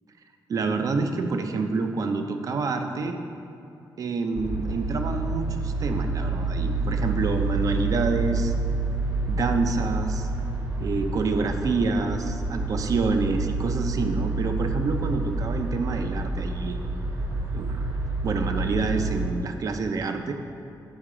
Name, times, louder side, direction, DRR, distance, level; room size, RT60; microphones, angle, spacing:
voice 1, 0.5-3.2 4.0-8.5 9.3-10.3 10.8-17.0 17.5-17.8 18.2-20.3, right 4 dB, 50° right, 6 dB, 0.5 m, -27 dB
sound 1, 4.3-19.3, right 3 dB, 65° right, 1.4 m, -28 dB
8.9 x 4.6 x 4.9 m, 2.7 s
wide cardioid pair, 150°, 7 cm